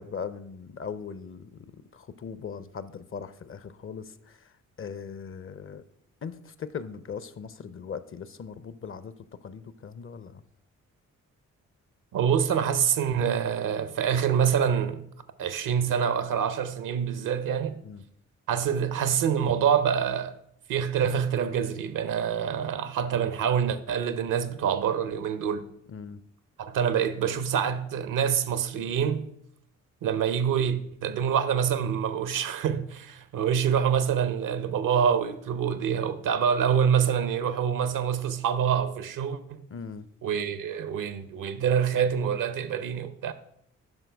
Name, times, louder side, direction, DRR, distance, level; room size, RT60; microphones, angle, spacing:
voice 1, 0.0-1.6 1.9-4.5 4.8-5.8 6.2-9.1 9.4-10.4 17.8-18.0 25.9-26.2 39.7-40.0, left 6 dB, 40° left, 0.6 m, -39 dB
voice 2, 12.1-15.0 15.4-17.8 18.5-20.4 20.7-25.7 26.6-29.3 30.0-39.6 40.2-43.3, right 8 dB, 65° right, 0.7 m, -26 dB
8.9 x 5.8 x 3.4 m
hypercardioid pair, 45°, 34 cm